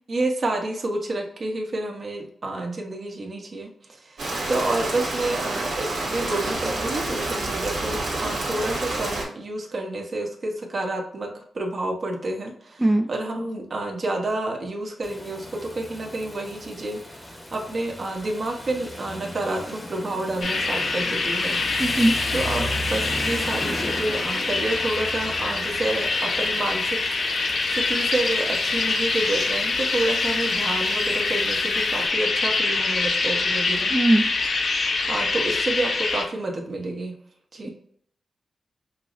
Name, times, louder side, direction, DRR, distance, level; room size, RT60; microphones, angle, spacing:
voice 1, 0.1-12.8 13.1-21.6 22.3-27.0 27.3-27.4 27.7-33.9 35.1-37.1 37.5-37.7, right 2 dB, 50° right, 1 dB, 1.0 m, -29 dB
Rain, 4.2-9.2, right 2 dB, 75° right, 1.5 m, -28 dB
voice 2, 12.8-13.1 21.8-22.2 33.9-34.3, right 1 dB, 15° right, 5 dB, 0.3 m, -20 dB
Rain 2, 15.0-32.1, left 1 dB, 15° left, 0.9 m, -36 dB
sound 1, 20.4-36.2, left 3 dB, 65° left, 0.6 m, -25 dB
5.5 x 2.1 x 2.5 m, 0.64 s
cardioid pair, 75°, 0 cm